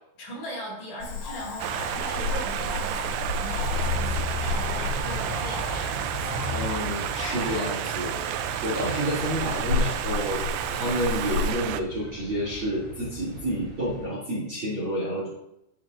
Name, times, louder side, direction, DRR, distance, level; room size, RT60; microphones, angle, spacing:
voice 1, 0.2-6.5, equal, 50° left, -3 dB, 3.6 m, -39 dB
Cricket / Frog, 1.0-11.5, left 4 dB, 80° left, 4.4 m, -33 dB
sound 1, 1.6-11.8, right 12 dB, 85° right, 2.5 m, -31 dB
sound 2, 3.6-14.0, left 2 dB, 15° right, 1.4 m, -37 dB
voice 2, 6.5-8.2 8.6-10.4 10.7-15.3, equal, 35° right, -6 dB, 2.4 m, -29 dB
11.0 x 9.2 x 2.5 m, 0.82 s
omnidirectional pair, 5.4 m